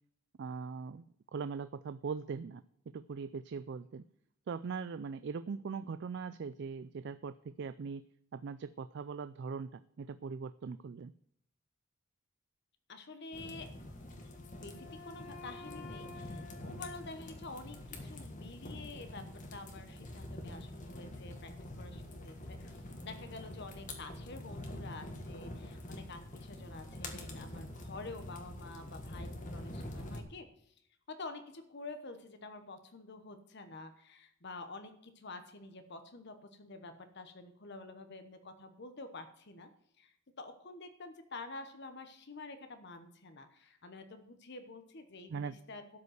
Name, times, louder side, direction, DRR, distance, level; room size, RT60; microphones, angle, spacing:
voice 1, 0.4-1.0 1.3-2.6 2.9-4.0 4.5-8.0 8.3-11.1 45.3-45.5, right 5 dB, 50° right, 14 dB, 0.3 m, -40 dB
voice 2, 12.9-13.7 14.6-19.3 19.5-21.5 21.8-30.7 31.1-39.7 40.0-46.0, left 3 dB, 50° left, 8 dB, 1.0 m, -48 dB
sound 1, 13.3-30.2, left 1 dB, 35° left, 1.7 m, -46 dB
Wind instrument woodwind instrument, 14.1-18.0, left 3 dB, 80° left, 2.8 m, -53 dB
12.5 x 5.3 x 7.9 m, 0.70 s
head